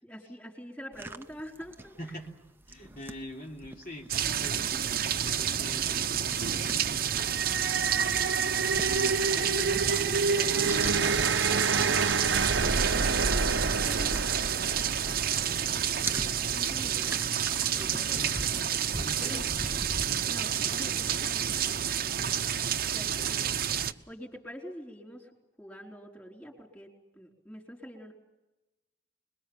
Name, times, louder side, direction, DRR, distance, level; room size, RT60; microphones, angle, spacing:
voice 1, 0.0-2.2 7.5-8.0 15.0-15.5 15.9-17.3 17.6-18.4 18.9-19.5 20.0-22.4 22.9-23.4 23.7-25.3 25.6-28.1, equal, 10° left, -1 dB, 4.5 m, -46 dB
sound 1, 0.9-15.2 15.4-20.6, right 2 dB, 10° right, 0.8 m, -43 dB
voice 2, 2.7-6.4 8.7-11.3 18.1-18.5 18.9-19.5 20.1-20.2, equal, 55° left, -1 dB, 3.5 m, -43 dB
sound 2, 4.1-23.9, right 9 dB, 55° right, 0.9 m, -29 dB
sound 3, 7.0-16.3, right 4 dB, 85° right, 0.9 m, -29 dB
26.0 x 21.5 x 7.3 m, 0.99 s
head